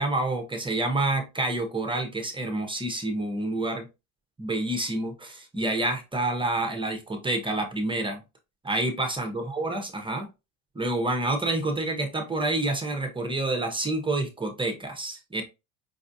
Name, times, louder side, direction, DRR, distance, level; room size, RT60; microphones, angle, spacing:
voice 1, 0.0-3.9 4.4-8.2 8.6-10.3 10.7-15.4, right 2 dB, 10° right, 4 dB, 0.7 m, -28 dB
5.3 x 2.3 x 2.6 m, 0.26 s
cardioid pair, 120°, 42 cm